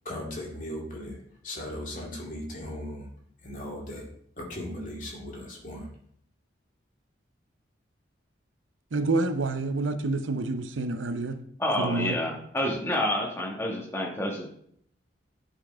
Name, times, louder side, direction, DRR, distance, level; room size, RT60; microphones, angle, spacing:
voice 1, 0.0-1.2 1.4-3.1 3.4-4.1 4.4-5.9, left 1 dB, 40° left, -2 dB, 2.3 m, -37 dB
voice 2, 8.9-11.4 11.8-12.2, right 3 dB, 90° right, 10 dB, 0.6 m, -28 dB
voice 3, 11.6-14.5, left 1 dB, 15° left, -1 dB, 1.5 m, -28 dB
10.0 x 4.5 x 4.4 m, 0.66 s
head